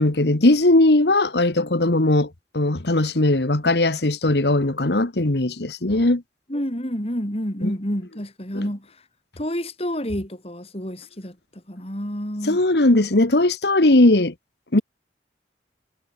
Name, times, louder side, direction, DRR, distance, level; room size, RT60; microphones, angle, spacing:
voice 1, 0.0-6.2 7.6-7.7 12.4-14.3 14.7-14.8, left 2 dB, 70° left, 1.6 m, -19 dB
voice 2, 6.5-9.0 9.4-12.6, equal, 35° left, 5.8 m, -29 dB
head